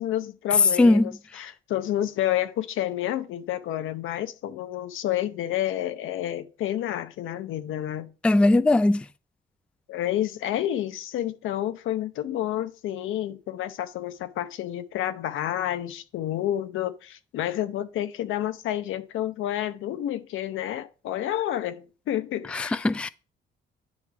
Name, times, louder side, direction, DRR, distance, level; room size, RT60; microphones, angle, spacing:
voice 1, 0.0-8.1 9.9-22.8, left 12 dB, 85° left, 0.8 m, -29 dB
voice 2, 8.2-9.0 22.5-23.1, left 2 dB, 5° left, 0.3 m, -19 dB
9.7 x 3.3 x 5.8 m
cardioid pair, 90°, 20 cm